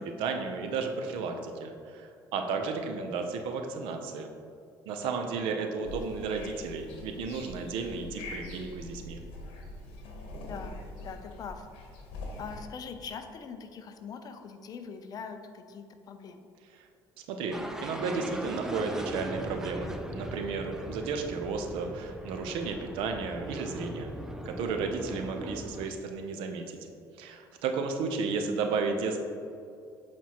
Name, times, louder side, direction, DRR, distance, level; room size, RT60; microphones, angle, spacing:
voice 1, 0.2-4.3 4.9-9.2 16.7-16.9 17.3-24.1 24.4-26.8 27.2-29.2, right 4 dB, 85° right, 5 dB, 0.6 m, -33 dB
sound 1, 5.8-12.6, left 2 dB, 90° left, 1.0 m, -43 dB
voice 2, 10.4-11.7 12.4-16.4 25.1-25.2, left 6 dB, 45° left, 7 dB, 0.5 m, -42 dB
sound 2, 17.5-25.9, right 1 dB, 5° right, 0.4 m, -39 dB
7.4 x 4.4 x 2.9 m, 2.5 s
cardioid pair, 120°, 9 cm